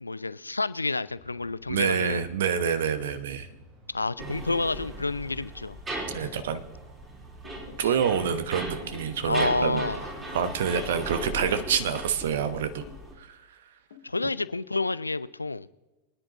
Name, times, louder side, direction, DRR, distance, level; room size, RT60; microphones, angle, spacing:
voice 1, 0.0-2.2 3.9-5.8 6.2-6.3 9.2-10.1 14.0-15.7, left 3 dB, 80° left, 17 dB, 0.4 m, -29 dB
sound 1, 1.0-12.0, right 3 dB, 40° right, 3.4 m, -53 dB
voice 2, 1.7-3.5 6.1-6.6 7.8-9.9 10.3-12.8 13.2-13.4, right 7 dB, 60° right, 11 dB, 0.9 m, -27 dB
sound 2, 4.2-13.1, right 1 dB, 20° right, 3.6 m, -38 dB
sound 3, 7.4-8.4 8.8-9.4 10.2-10.8 11.1-12.2 12.5-13.1 13.9-14.4, left 6 dB, 65° left, 2.0 m, -49 dB
24.5 x 10.0 x 2.9 m, 1.1 s
figure-of-eight pair, 90°, 0 cm